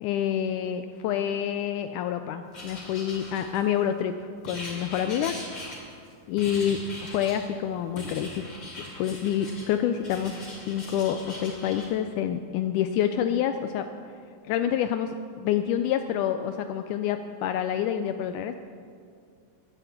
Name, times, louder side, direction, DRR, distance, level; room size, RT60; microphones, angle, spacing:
voice 1, 0.0-5.4 6.3-8.5 8.9-10.4 10.7-13.9 14.5-18.6, left 9 dB, 80° left, 8 dB, 1.9 m, -27 dB
Writing, 2.5-3.8 4.4-6.1 6.4-7.4 8.0-9.7 10.0-11.9, left 1 dB, 30° left, 3.2 m, -40 dB
10.5 x 10.0 x 7.8 m, 2.2 s
omnidirectional pair, 3.8 m